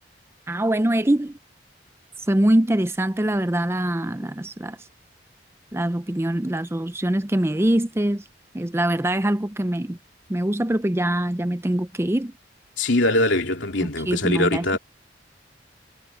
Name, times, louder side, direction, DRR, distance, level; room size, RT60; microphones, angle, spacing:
voice 1, 0.5-1.4 2.3-4.8 5.7-8.2 8.5-10.0 10.3-12.3 13.8-14.7, right 1 dB, 15° right, 0.5 m, -23 dB
voice 2, 12.8-14.8, left 2 dB, 80° left, 3.0 m, -22 dB
head